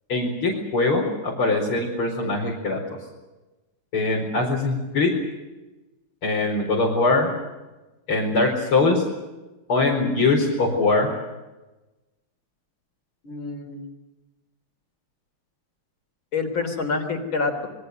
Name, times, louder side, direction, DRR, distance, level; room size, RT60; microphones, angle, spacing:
voice 1, 0.1-2.8 3.9-5.1 6.2-7.3 8.1-9.0 9.7-11.1, left 3 dB, 90° left, -3 dB, 5.5 m, -22 dB
voice 2, 13.2-13.9 16.3-17.7, left 4 dB, 65° left, 6 dB, 4.6 m, -27 dB
27.5 x 23.0 x 6.7 m, 1.1 s
omnidirectional pair, 2.3 m